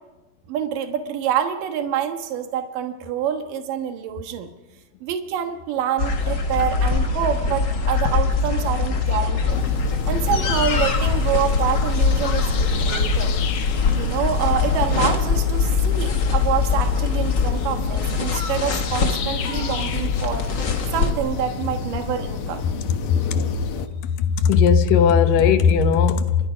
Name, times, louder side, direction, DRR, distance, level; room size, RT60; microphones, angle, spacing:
voice 1, 0.5-4.5 5.0-9.6 10.1-13.3 13.9-20.5 20.9-22.6, right 9 dB, 80° right, 3.0 m, -26 dB
sound 1, 6.0-21.1, left 5 dB, 40° left, 2.0 m, -22 dB
sound 2, 9.5-23.9, left 6 dB, 60° left, 1.5 m, -30 dB
voice 2, 24.4-26.4, left 6 dB, 85° left, 2.8 m, -16 dB
29.5 x 25.5 x 5.1 m
omnidirectional pair, 3.8 m